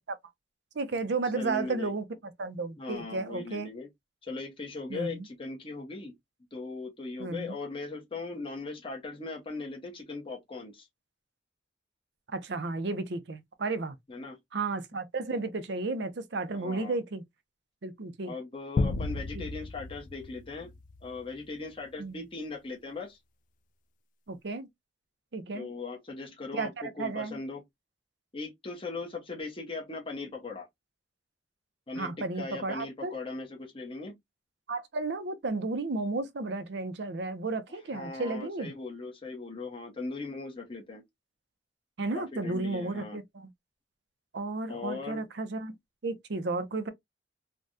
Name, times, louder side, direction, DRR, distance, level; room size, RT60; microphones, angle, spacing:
voice 1, 0.8-2.1 2.4-3.7 4.9-5.3 7.2-7.6 12.3-14.0 14.5-17.2 17.8-18.3 19.3-19.4 22.0-22.2 24.3-24.7 25.3-25.7 26.5-26.7 27.0-27.4 32.0-33.1 34.7-38.7 42.0-43.5 44.3-45.8 46.0-46.9, right 3 dB, 65° right, 0.6 m, -33 dB
voice 2, 1.3-1.9 2.8-3.9 4.2-6.1 6.5-10.9 14.1-14.4 16.5-17.0 18.2-20.7 21.0-23.2 25.5-27.6 28.3-30.7 31.9-34.1 37.9-41.0 42.1-43.2 44.7-45.2, left 3 dB, 30° left, 1.0 m, -39 dB
sound 1, 18.8-21.3, left 3 dB, 45° left, 0.3 m, -33 dB
3.4 x 2.2 x 2.6 m
head